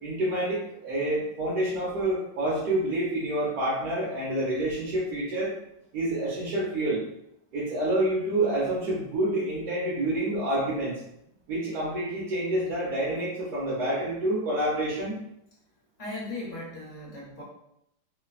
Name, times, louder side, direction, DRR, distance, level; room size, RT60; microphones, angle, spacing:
voice 1, 0.0-5.5 5.9-7.0 7.5-11.0 11.5-15.2, right 1 dB, 65° right, -7 dB, 1.2 m, -28 dB
voice 2, 16.0-17.4, left 2 dB, 50° left, -6 dB, 1.2 m, -37 dB
3.1 x 2.2 x 2.3 m, 0.78 s
omnidirectional pair, 1.9 m